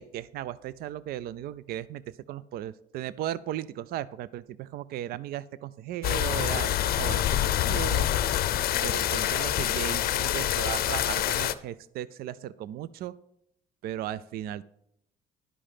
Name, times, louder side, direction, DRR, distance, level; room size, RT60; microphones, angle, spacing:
voice 1, 0.0-8.1 8.7-13.1 13.8-14.6, right 12 dB, 65° right, 18 dB, 0.4 m, -36 dB
sound 1, 6.0-11.5, left 12 dB, 65° left, 0.6 m, -26 dB
11.0 x 5.1 x 5.7 m, 0.75 s
cardioid pair, 110°, 17 cm